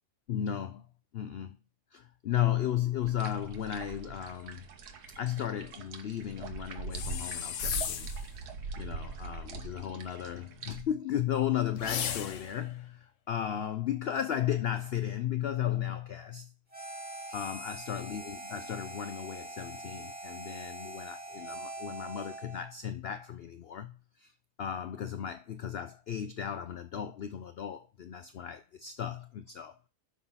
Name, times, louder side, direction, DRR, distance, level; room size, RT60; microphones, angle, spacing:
voice 1, 0.3-0.8 1.1-1.6 1.9-4.6 5.2-8.1 8.8-16.5 17.3-24.3 24.6-29.7, left 10 dB, 80° left, 0.5 m, -35 dB
sound 1, 3.0-10.8, right 4 dB, 80° right, 1.6 m, -42 dB
sound 2, 6.9-8.3 11.8-12.6, left 8 dB, 60° left, 1.1 m, -35 dB
Harmonica, 16.7-22.7, right 1 dB, 5° right, 2.0 m, -43 dB
11.5 x 4.0 x 5.6 m
omnidirectional pair, 1.7 m